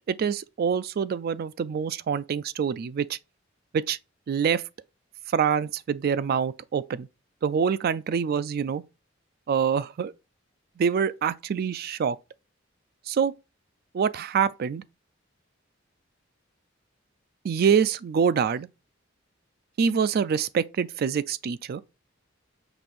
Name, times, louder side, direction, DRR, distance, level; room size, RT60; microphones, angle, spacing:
voice 1, 0.1-3.2 3.7-4.0 4.3-4.6 5.3-7.1 7.4-8.8 9.5-10.1 10.8-12.2 13.1-13.3 13.9-14.8 17.4-18.7 19.8-21.8, right 7 dB, 50° right, 0.3 m, -25 dB
5.9 x 2.5 x 3.5 m
head